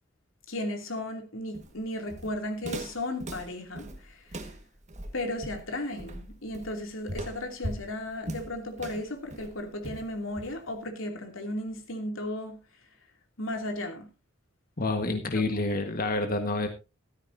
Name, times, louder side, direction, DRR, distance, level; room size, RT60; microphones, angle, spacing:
voice 1, 0.5-4.5 5.1-12.6 13.4-14.1 15.3-15.6, left 1 dB, 85° left, 2.8 m, -35 dB
Walk footsteps, 1.5-10.8, right 1 dB, 35° right, 1.6 m, -40 dB
voice 2, 14.8-16.7, left 2 dB, 45° left, 1.6 m, -28 dB
15.0 x 13.0 x 2.7 m
head